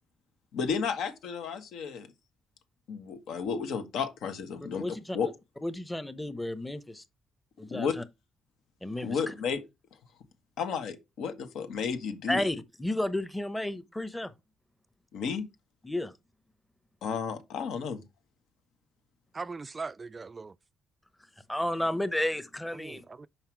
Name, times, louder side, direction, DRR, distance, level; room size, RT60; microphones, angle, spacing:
voice 1, 0.5-2.1 2.9-4.8 5.1-5.3 7.7-7.9 9.0-9.6 10.6-12.4 15.1-15.4 17.0-18.0, left 6 dB, 80° left, 1.4 m, -32 dB
voice 2, 4.7-5.2 5.6-7.0 7.6-8.0 8.8-9.3 12.3-14.3 15.8-16.1 21.5-23.0, left 1 dB, 10° left, 0.8 m, -32 dB
voice 3, 19.3-20.5 22.7-23.3, right 4 dB, 30° right, 0.3 m, -40 dB
5.7 x 4.8 x 4.6 m
cardioid pair, 90°, 0 cm